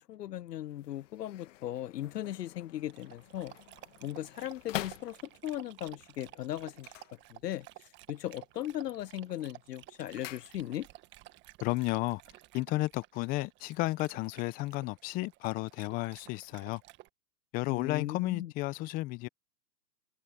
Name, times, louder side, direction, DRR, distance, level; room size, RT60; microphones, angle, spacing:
voice 1, 0.0-3.5 4.0-5.2 5.4-6.9 7.3-7.7 8.1-10.9 17.7-18.5, left 12 dB, 70° left, 0.6 m, -38 dB
sound 1, 0.6-5.7 6.7-7.8 8.1-8.6 9.0-11.1 11.3-11.4, left 15 dB, 45° left, 1.8 m, -46 dB
Dog, 2.9-17.1, right 18 dB, 20° right, 1.5 m, -54 dB
voice 2, 11.6-12.2 12.5-16.8 17.5-19.3, left 20 dB, 15° left, 0.8 m, -33 dB
hypercardioid pair, 135°, 50 cm